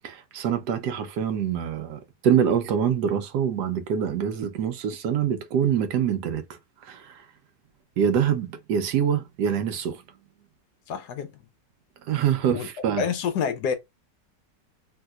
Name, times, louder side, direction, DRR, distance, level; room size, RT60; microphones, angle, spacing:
voice 1, 0.0-7.3 8.0-10.0 12.0-13.0, right 8 dB, 75° right, 1.2 m, -25 dB
voice 2, 10.9-11.3 12.5-12.7 13.0-13.7, left 7 dB, 70° left, 1.2 m, -27 dB
3.4 x 2.8 x 2.3 m
omnidirectional pair, 1.9 m